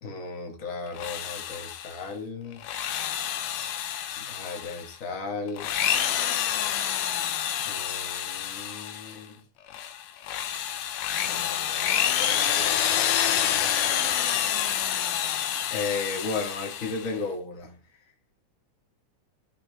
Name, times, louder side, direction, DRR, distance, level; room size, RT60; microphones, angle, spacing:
voice 1, 0.0-2.6 4.2-5.7 7.6-9.4 11.2-13.7 15.7-17.7, left 4 dB, 50° left, 3 dB, 0.9 m, -35 dB
Drill, 0.9-2.0 2.5-4.9 5.5-9.2 9.7-17.1, left 10 dB, 90° left, 2.3 m, -28 dB
12.0 x 4.5 x 3.3 m, 0.35 s
omnidirectional pair, 3.6 m